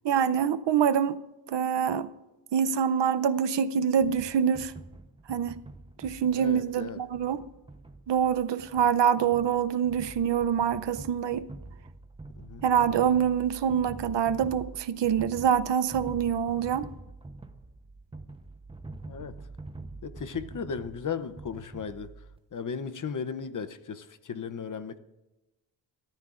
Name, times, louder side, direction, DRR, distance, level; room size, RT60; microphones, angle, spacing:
voice 1, 0.0-1.2 1.5-2.1 2.5-4.7 5.3-5.6 6.0-7.4 8.1-11.4 12.6-16.9, right 8 dB, 70° right, 0.7 m, -25 dB
sound 1, 4.0-22.4, right 2 dB, 10° right, 0.8 m, -46 dB
voice 2, 6.3-7.0 12.4-12.6 19.1-19.4 20.0-22.1 22.5-25.0, left 6 dB, 45° left, 0.7 m, -36 dB
27.0 x 13.5 x 2.5 m
wide cardioid pair, 130°, 45 cm